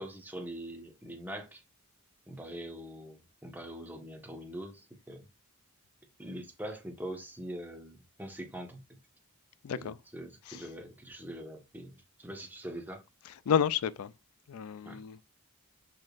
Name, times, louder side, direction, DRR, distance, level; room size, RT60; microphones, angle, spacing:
voice 1, 0.0-1.6 2.3-5.3 6.2-8.8 9.7-11.9 12.2-13.0 14.8-15.0, right 1 dB, 10° right, 1.3 m, -43 dB
voice 2, 9.6-10.0 10.5-10.6 13.3-14.1 14.5-15.2, left 7 dB, 75° left, 0.4 m, -31 dB
6.3 x 6.2 x 2.5 m
head